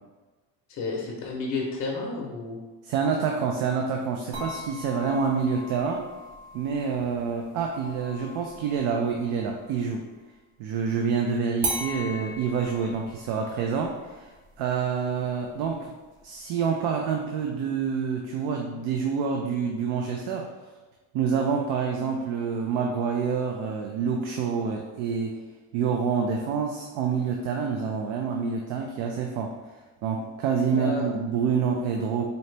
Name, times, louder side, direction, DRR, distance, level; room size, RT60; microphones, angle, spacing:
voice 1, 0.7-2.6 30.7-31.1, left 3 dB, 35° left, -2 dB, 0.8 m, -31 dB
voice 2, 2.8-6.0 6.5-10.0 10.6-15.9 16.2-20.5 21.1-25.4 25.7-29.5 30.0-32.2, right 6 dB, 70° right, 2 dB, 0.5 m, -27 dB
sound 1, 4.3-9.9 11.6-16.6, right 1 dB, 45° right, 1.0 m, -39 dB
4.1 x 2.8 x 3.3 m, 1.2 s
cardioid pair, 145°, 38 cm